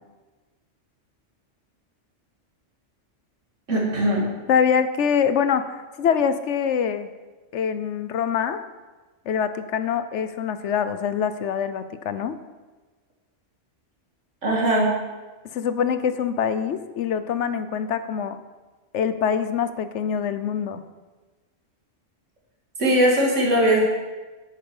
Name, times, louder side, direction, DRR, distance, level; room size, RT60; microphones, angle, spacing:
voice 1, 3.7-4.2 14.4-14.9 22.8-23.8, right 1 dB, 75° right, -3 dB, 2.8 m, -20 dB
voice 2, 4.5-7.1 7.5-8.6 9.3-12.4 15.4-18.4 18.9-20.8, left 7 dB, 70° left, 11 dB, 1.0 m, -24 dB
11.0 x 8.7 x 5.5 m, 1.3 s
omnidirectional pair, 1.3 m